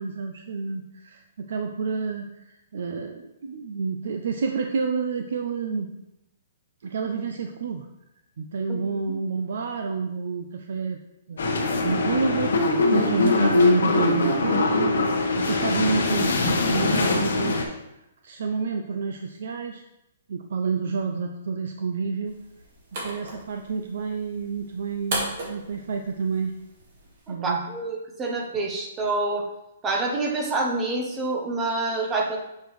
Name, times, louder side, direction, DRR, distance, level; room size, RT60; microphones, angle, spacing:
voice 1, 0.0-5.9 6.8-7.9 8.4-11.0 11.3-17.8 18.2-19.8 20.3-22.4 23.0-26.5 27.3-27.6, right 5 dB, 55° right, 5 dB, 0.4 m, -29 dB
voice 2, 8.7-9.2 27.4-29.4 29.8-32.4, right 3 dB, 10° right, 1 dB, 0.7 m, -27 dB
sound 1, 11.4-17.7, left 3 dB, 75° left, 1.0 m, -22 dB
sound 2, 22.3-27.3, right 2 dB, 40° right, 1.6 m, -37 dB
6.5 x 5.1 x 3.1 m, 0.89 s
hypercardioid pair, 175°, 0 cm